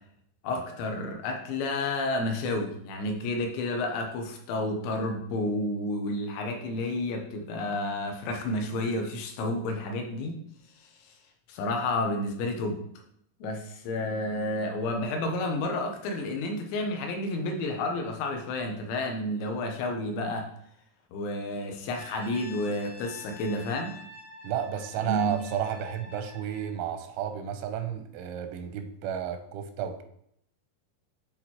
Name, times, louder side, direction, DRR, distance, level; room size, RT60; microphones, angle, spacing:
voice 1, 0.4-10.4 11.5-12.8 13.4-20.5 21.1-24.0 25.0-25.4, left 2 dB, 85° left, 3 dB, 3.2 m, -30 dB
Brass instrument, 21.9-26.8, left 2 dB, 60° left, 2.8 m, -47 dB
voice 2, 24.4-30.0, right 9 dB, 85° right, 8 dB, 3.1 m, -32 dB
8.9 x 4.1 x 3.0 m, 0.70 s
omnidirectional pair, 5.2 m